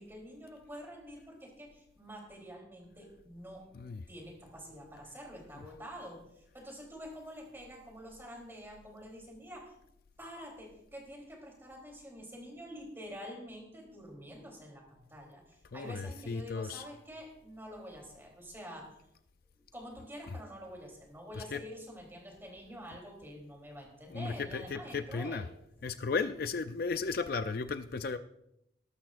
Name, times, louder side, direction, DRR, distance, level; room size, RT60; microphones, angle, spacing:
voice 1, 0.0-3.7 4.1-9.7 10.2-19.0 19.7-25.5, equal, 10° right, 0 dB, 3.3 m, -47 dB
voice 2, 15.7-16.8 21.4-21.6 24.1-25.5 25.8-28.2, left 4 dB, 50° left, 10 dB, 0.4 m, -35 dB
19.5 x 12.0 x 2.5 m, 0.81 s
head